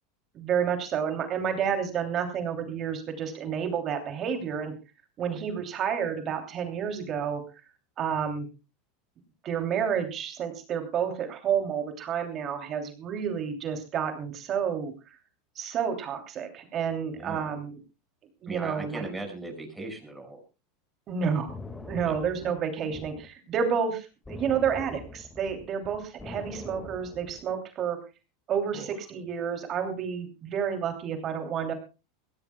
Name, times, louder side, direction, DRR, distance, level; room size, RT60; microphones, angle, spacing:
voice 1, 0.3-4.7 5.2-7.4 8.0-8.5 9.4-14.9 15.5-17.8 18.4-19.0 21.1-21.5 21.9-28.0 28.5-31.7, right 7 dB, 40° right, 6 dB, 3.0 m, -30 dB
voice 2, 17.1-17.5 18.5-20.4 22.0-22.2 22.9-23.1 28.7-28.9, right 2 dB, 5° right, 2 dB, 6.0 m, -39 dB
sound 1, 21.5-23.3 24.3-27.5, left 2 dB, 10° left, 1.9 m, -43 dB
23.0 x 16.0 x 2.3 m, 0.30 s
supercardioid pair, 110°, 0 cm